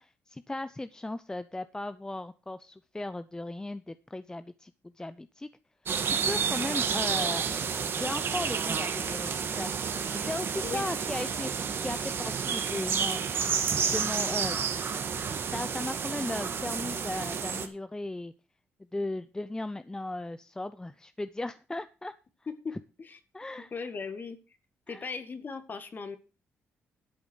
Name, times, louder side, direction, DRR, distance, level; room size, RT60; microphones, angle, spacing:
voice 1, 0.0-4.7 5.0-5.5 6.0-7.5 7.9-9.7 10.1-13.2 13.6-14.6 15.5-18.3 18.9-22.1 23.3-23.7 24.9-25.1, left 2 dB, 15° left, 13 dB, 0.6 m, -36 dB
sound 1, 5.9-17.7, right 6 dB, 55° right, 1.7 m, -30 dB
voice 2, 22.5-23.2 23.7-24.4 24.9-26.2, left 5 dB, 45° left, 10 dB, 2.0 m, -38 dB
12.0 x 7.2 x 6.3 m, 0.33 s
cardioid pair, 75°, 5 cm